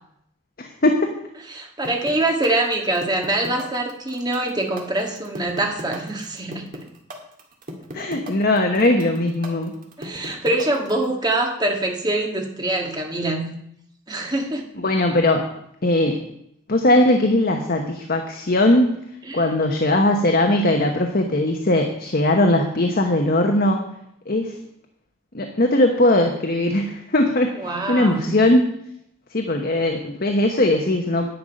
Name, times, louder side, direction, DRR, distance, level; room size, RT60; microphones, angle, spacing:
voice 1, 0.6-1.1 7.9-9.7 14.8-15.5 15.8-16.2 16.7-18.9 19.3-23.8 24.3-24.5 25.3-28.6 29.3-31.3, left 1 dB, 45° left, 4 dB, 1.0 m, -19 dB
voice 2, 1.5-6.6 8.0-8.1 10.0-13.5 14.1-14.7 19.3-19.5 27.6-28.3, right 2 dB, 20° right, 2 dB, 1.6 m, -24 dB
sound 1, 1.8-11.1, right 1 dB, 40° right, 1.9 m, -36 dB
10.5 x 9.2 x 5.2 m, 0.74 s
head